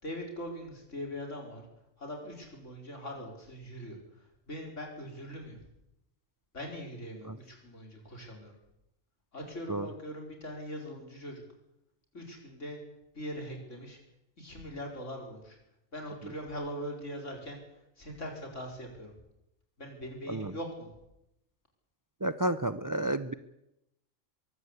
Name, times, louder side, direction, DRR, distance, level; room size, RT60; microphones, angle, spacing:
voice 1, 0.0-1.6 2.0-5.6 6.5-8.6 9.3-11.4 12.1-12.8 13.1-14.0 14.4-15.6 15.9-19.1 19.8-20.9, equal, 65° left, 1 dB, 5.1 m, -41 dB
voice 2, 22.2-23.3, right 1 dB, 25° right, 13 dB, 0.4 m, -31 dB
22.5 x 14.5 x 8.3 m, 0.87 s
omnidirectional pair, 1.4 m